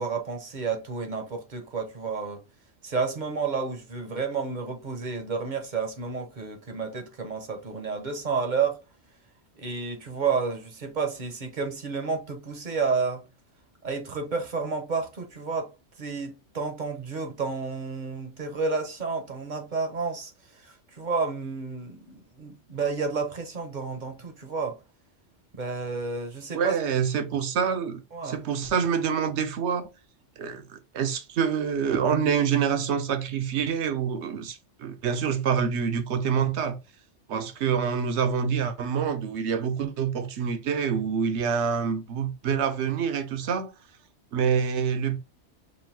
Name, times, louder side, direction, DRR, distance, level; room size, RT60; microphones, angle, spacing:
voice 1, 0.0-2.4 2.8-8.8 9.6-13.3 13.8-15.7 16.0-20.3 20.6-24.8 25.5-26.7 28.1-28.4, right 5 dB, 45° right, 0.8 m, -30 dB
voice 2, 26.5-29.9 30.4-36.8 37.3-43.7 44.3-45.2, right 7 dB, 70° right, 1.0 m, -26 dB
5.2 x 2.7 x 2.7 m
omnidirectional pair, 1.2 m